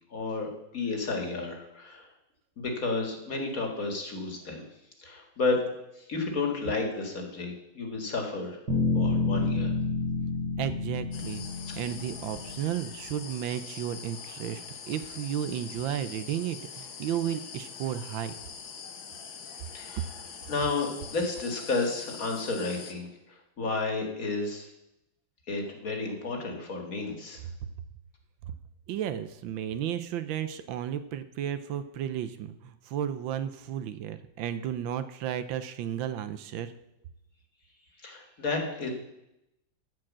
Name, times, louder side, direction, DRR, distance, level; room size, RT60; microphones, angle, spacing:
voice 1, 0.1-2.1 2.6-4.7 5.0-5.6 6.0-8.6 8.9-9.7 11.7-11.8 19.7-20.1 20.5-24.7 25.5-27.4 38.0-38.9, left 3 dB, 45° left, 2 dB, 2.1 m, -32 dB
sound 1, 8.7-12.7, left 3 dB, 60° right, 3.5 m, -29 dB
voice 2, 10.6-18.3 28.9-36.7, right 10 dB, 75° right, 11 dB, 1.4 m, -33 dB
sound 2, 11.1-22.9, left 6 dB, 75° left, 1.9 m, -43 dB
14.0 x 4.8 x 7.3 m, 0.86 s
omnidirectional pair, 2.1 m